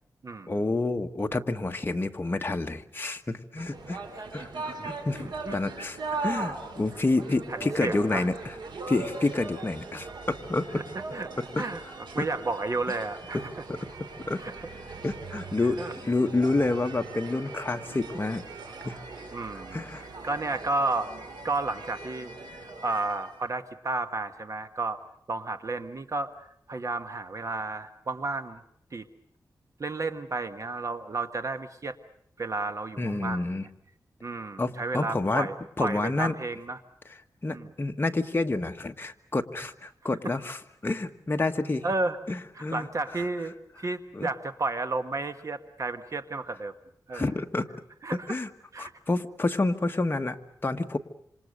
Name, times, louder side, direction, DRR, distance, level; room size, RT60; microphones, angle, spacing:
voice 1, 0.5-4.0 4.3-8.5 8.9-10.8 11.4-12.3 13.3-14.4 15.0-18.4 18.8-19.0 19.7-20.0 33.0-33.7 34.6-35.5 35.8-36.3 37.4-41.9 42.3-42.9 43.1-43.2 44.1-44.3 47.1-47.7 48.3-48.5 48.8-51.0, left 2 dB, 30° left, 5 dB, 1.6 m, -29 dB
sound 1, 3.6-23.4, right 3 dB, 90° right, 3.7 m, -40 dB
voice 2, 4.5-4.9 5.2-5.6 7.5-8.3 11.1-11.3 11.6-13.5 14.4-14.5 14.9-15.0 15.8-15.9 19.3-19.8 20.2-21.1 21.4-25.0 25.3-28.6 28.9-29.0 29.8-32.0 32.4-33.5 34.2-36.8 37.5-37.7 41.8-42.2 42.5-46.7 47.1-47.3 48.0-48.3 48.7-48.9, right 3 dB, 45° right, 9 dB, 1.3 m, -32 dB
27.0 x 27.0 x 6.6 m, 0.71 s
wide cardioid pair, 115°, 7 cm